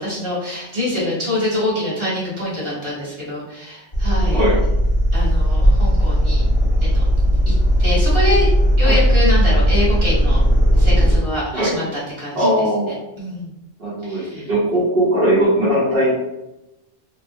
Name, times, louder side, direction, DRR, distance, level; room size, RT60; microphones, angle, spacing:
voice 1, 0.0-4.4 5.1-6.4 6.8-7.1 7.8-8.5 8.8-10.4 10.8-11.8 12.2-12.4 13.2-13.5 14.0-14.5, left 1 dB, 30° right, -9 dB, 1.4 m, -24 dB
sound 1, 3.9-11.2, equal, 30° left, 1.0 m, -16 dB
voice 2, 12.3-13.0 13.8-16.1, right 1 dB, 65° right, -9 dB, 1.2 m, -19 dB
3.1 x 2.2 x 2.5 m, 0.93 s
omnidirectional pair, 1.0 m